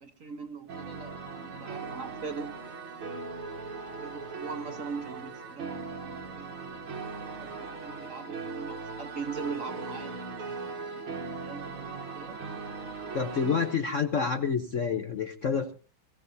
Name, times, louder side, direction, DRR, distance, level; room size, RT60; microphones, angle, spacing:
voice 1, 0.0-2.6 3.1-3.2 3.9-6.5 7.3-10.2 11.1-12.4 13.3-13.6, right 5 dB, 50° right, 7 dB, 1.2 m, -41 dB
sound 1, 0.7-13.8, right 4 dB, 85° right, 2.4 m, -39 dB
voice 2, 13.1-15.7, left 6 dB, 55° left, 7 dB, 0.9 m, -28 dB
22.5 x 16.0 x 2.7 m, 0.35 s
omnidirectional pair, 2.3 m